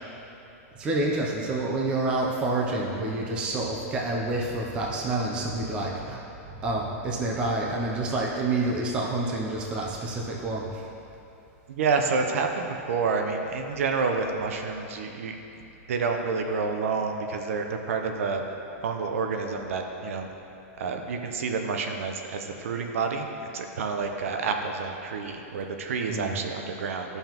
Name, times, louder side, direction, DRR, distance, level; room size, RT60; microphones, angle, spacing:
voice 1, 0.7-6.2 6.6-10.9 26.1-26.3, right 2 dB, 10° right, -2 dB, 0.5 m, -28 dB
voice 2, 11.7-18.4 18.8-20.3 20.8-27.2, right 4 dB, 60° right, 4 dB, 0.7 m, -29 dB
12.5 x 5.6 x 2.9 m, 2.9 s
supercardioid pair, 180°, 8 cm